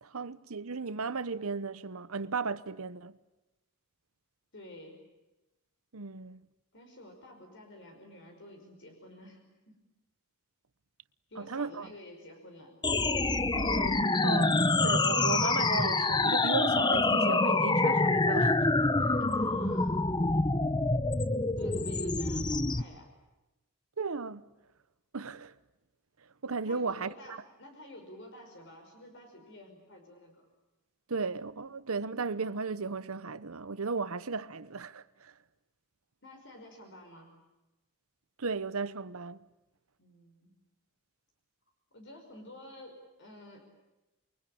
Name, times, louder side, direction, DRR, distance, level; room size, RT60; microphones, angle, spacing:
voice 1, 0.0-3.1 5.9-6.4 11.4-11.9 13.5-18.7 24.0-24.4 25.1-25.5 26.4-27.4 31.1-35.3 38.4-39.4, right 4 dB, 80° right, 1.0 m, -35 dB
voice 2, 4.5-5.0 6.7-9.8 11.3-12.7 19.2-20.0 20.3-20.5 21.6-23.1 26.6-30.5 36.2-37.4 40.0-40.5 41.9-43.7, left 1 dB, 60° left, 5.5 m, -50 dB
sound 1, 12.8-22.8, left 2 dB, 20° left, 0.9 m, -26 dB
29.0 x 23.5 x 8.7 m
head